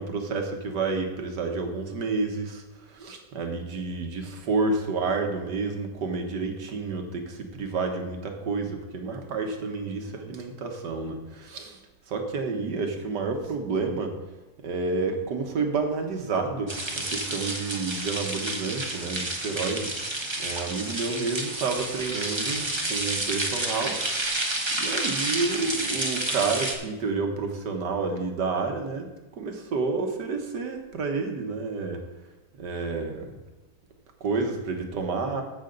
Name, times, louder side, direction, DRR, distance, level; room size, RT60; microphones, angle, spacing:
voice 1, 0.0-11.8 12.1-14.1 14.6-24.1 24.7-32.0 32.6-33.3 34.2-35.4, right 4 dB, 70° right, 4 dB, 1.9 m, -30 dB
sound 1, 16.7-26.7, right 2 dB, 20° right, 0.9 m, -30 dB
14.5 x 6.5 x 3.9 m, 1.1 s
omnidirectional pair, 2.0 m